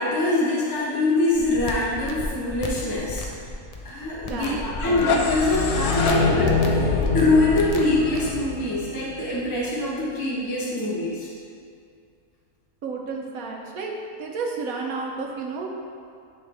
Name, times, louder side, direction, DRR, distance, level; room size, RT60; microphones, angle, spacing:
voice 1, 0.0-3.2 3.8-11.3, left 2 dB, 15° left, -6 dB, 0.9 m, -24 dB
sound 1, 1.3-8.3, left 2 dB, 50° left, 0.4 m, -35 dB
voice 2, 4.3-4.7 12.8-13.9 14.2-15.8, right 4 dB, 70° right, 0 dB, 1.3 m, -31 dB
sound 2, 4.7-9.6, left 3 dB, 80° left, 1.2 m, -24 dB
11.0 x 3.8 x 3.5 m, 2.3 s
omnidirectional pair, 1.5 m